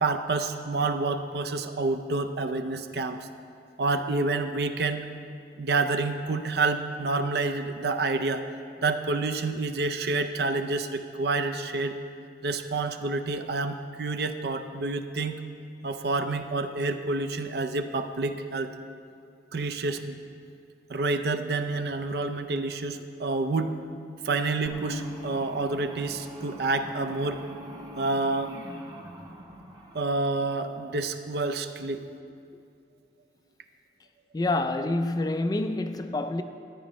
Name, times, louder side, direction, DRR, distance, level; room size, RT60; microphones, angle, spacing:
voice 1, 0.0-3.3 3.8-5.0 5.6-8.5 8.8-12.0 12.4-15.4 15.8-18.7 19.5-20.2 20.9-23.7 24.2-27.4 28.0-28.5 29.9-32.0, right 3 dB, 60° right, 0.5 m, -28 dB
sound 1, 24.7-31.0, equal, 20° right, 0.9 m, -43 dB
voice 2, 34.3-36.4, left 2 dB, 20° left, 0.3 m, -27 dB
13.5 x 10.5 x 3.0 m
head